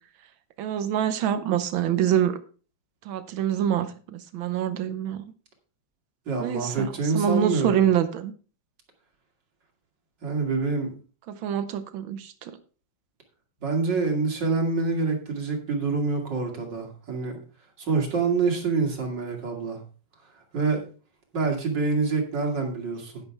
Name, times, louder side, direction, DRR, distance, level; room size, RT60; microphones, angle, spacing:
voice 1, 0.6-2.4 3.1-5.2 6.4-6.9 7.1-8.3 11.3-12.6, right 9 dB, 80° right, 11 dB, 1.6 m, -25 dB
voice 2, 6.3-7.8 10.2-10.9 13.6-17.4 17.8-19.8 20.5-20.8 21.3-23.2, right 4 dB, 65° right, 2 dB, 3.1 m, -26 dB
11.0 x 10.5 x 3.4 m, 0.37 s
omnidirectional pair, 2.1 m